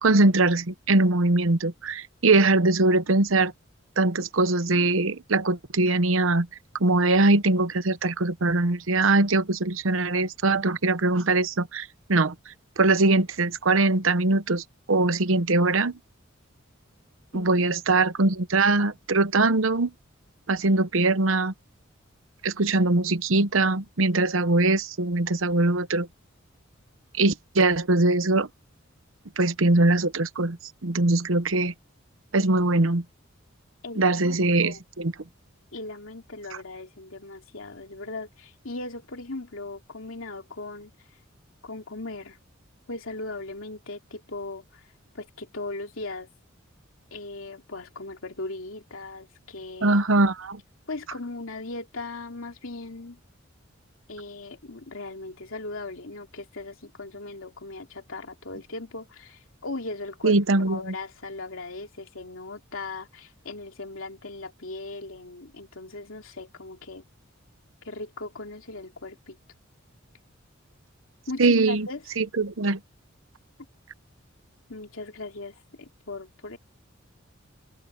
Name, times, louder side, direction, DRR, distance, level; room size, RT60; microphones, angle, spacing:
voice 1, 0.0-3.5 4.0-6.5 6.8-12.3 12.8-16.0 17.3-19.9 20.5-21.5 22.4-26.1 27.2-28.5 29.4-30.6 30.8-31.7 32.3-33.0 34.0-35.1 49.8-50.6 60.2-60.9 71.4-71.9 72.2-72.8, right 2 dB, 70° right, 1.0 m, -22 dB
voice 2, 33.8-34.8 35.7-40.9 41.6-42.4 42.9-44.8 45.1-46.3 47.1-50.0 50.9-53.2 54.1-60.4 60.7-67.0 67.8-69.4 71.3-72.0 74.7-76.6, left 2 dB, 75° left, 3.0 m, -38 dB
open air
head